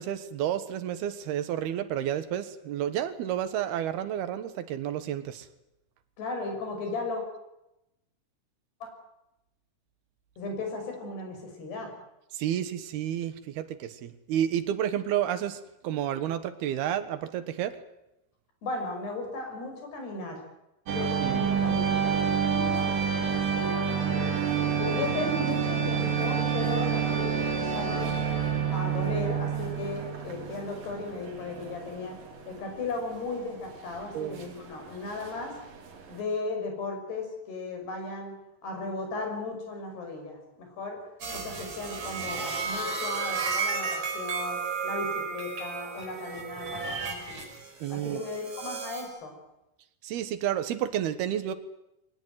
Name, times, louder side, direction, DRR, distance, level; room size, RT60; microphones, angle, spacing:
voice 1, 0.0-5.5 12.3-17.8 21.2-21.8 34.1-34.5 47.8-48.2 50.0-51.5, right 10 dB, 75° right, 11 dB, 3.4 m, -31 dB
voice 2, 6.2-7.2 10.4-11.9 18.6-20.4 20.9-24.3 24.7-28.1 28.7-32.2 32.5-35.6 36.1-38.3 38.6-41.0 41.3-44.6 44.8-47.4 47.9-49.3, left 3 dB, 90° left, 4 dB, 8.2 m, -36 dB
sound 1, 20.9-36.2, right 7 dB, 60° right, 4.8 m, -28 dB
sound 2, 41.2-49.1, right 5 dB, 45° right, 6.3 m, -33 dB
22.5 x 19.0 x 9.3 m, 0.89 s
omnidirectional pair, 4.6 m